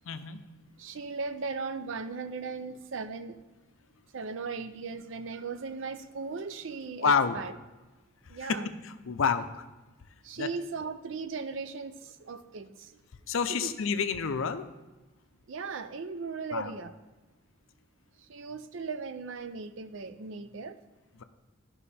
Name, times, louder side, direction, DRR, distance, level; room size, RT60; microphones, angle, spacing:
voice 1, 0.0-0.4 7.0-7.4 8.2-8.6 8.8-9.6 10.4-10.5 13.3-14.7 16.5-16.7 21.2-21.3, left 5 dB, 70° left, 10 dB, 0.5 m, -28 dB
voice 2, 0.8-3.4 4.1-7.5 8.3-8.7 10.2-13.0 13.5-13.7 15.5-16.9 18.2-20.8, right 4 dB, 60° right, 11 dB, 0.5 m, -37 dB
12.0 x 5.5 x 4.2 m, 1.1 s
head